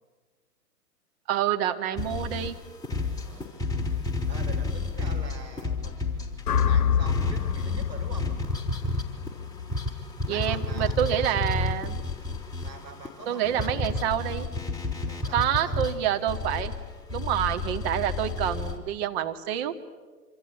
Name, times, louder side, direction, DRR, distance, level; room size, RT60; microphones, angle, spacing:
voice 1, 1.3-2.6 10.3-12.0 13.3-14.5 15.3-16.7 17.1-19.7, right 10 dB, 40° right, 6 dB, 2.1 m, -27 dB
sound 1, 2.0-6.7 7.1-18.8, left 3 dB, 5° left, 3.7 m, -31 dB
voice 2, 4.3-8.3 10.2-11.3 12.6-13.9 15.1-15.8, right 2 dB, 85° right, 4 dB, 5.1 m, -44 dB
sound 2, 6.5-10.7, left 7 dB, 70° left, 1.1 m, -27 dB
26.5 x 26.0 x 8.5 m, 1.4 s
figure-of-eight pair, 115°, 49 cm